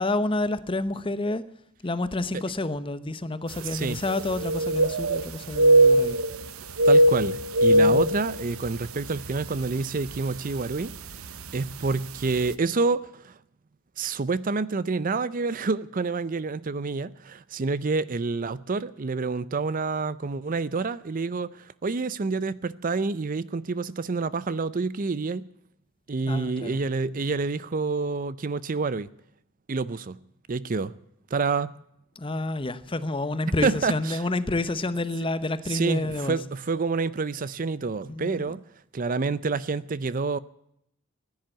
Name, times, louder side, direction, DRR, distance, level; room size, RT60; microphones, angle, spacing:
voice 1, 0.0-1.4 1.8-6.2 7.7-8.1 26.3-26.8 32.2-36.4 38.1-38.5, left 2 dB, 25° left, 0.9 m, -29 dB
sound 1, 3.6-3.7 4.0-5.3 5.5-6.4 6.7-8.9 9.3-9.4 10.1-10.4 11.4-11.5 11.9-12.0, right 1 dB, 80° right, 0.9 m, -20 dB
voice 2, 6.9-10.9 11.5-13.3 14.0-25.5 26.1-29.1 29.7-30.2 30.5-30.9 31.3-31.7 33.6-34.2 35.7-38.6 38.9-40.4, right 4 dB, 40° right, 0.5 m, -28 dB
15.5 x 10.5 x 9.0 m
head